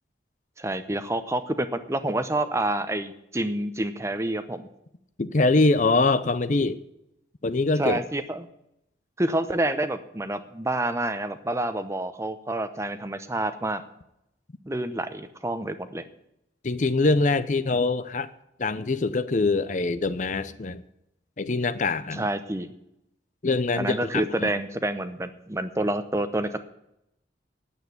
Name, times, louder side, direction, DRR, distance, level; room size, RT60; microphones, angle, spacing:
voice 1, 0.6-4.7 7.8-8.5 9.2-13.8 14.7-16.0 22.1-22.7 23.8-26.6, right 1 dB, 15° right, 11 dB, 0.7 m, -28 dB
voice 2, 5.2-6.8 7.4-8.0 16.6-18.3 18.6-20.8 21.4-22.3 23.4-24.5, left 3 dB, 40° left, 13 dB, 0.5 m, -24 dB
9.3 x 8.2 x 9.5 m, 0.81 s
head